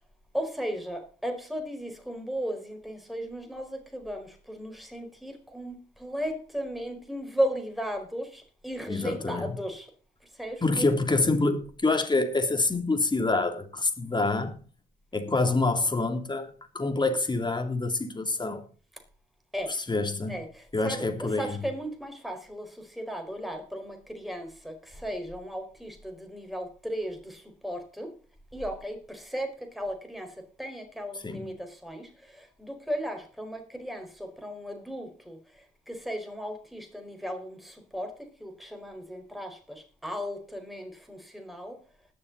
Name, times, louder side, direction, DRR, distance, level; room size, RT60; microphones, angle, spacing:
voice 1, 0.3-9.9 10.4-10.9 19.5-19.7 20.3-21.1 21.4-28.1 28.5-38.1 38.4-41.8, equal, ahead, 4.7 m, -36 dB
voice 2, 8.9-9.6 10.6-14.6 15.1-16.5 16.7-18.6 19.7-20.4 20.7-21.6 31.2-31.5, left 3 dB, 25° left, 3.1 m, -26 dB
20.5 x 6.9 x 4.1 m
supercardioid pair, 60°, 19 cm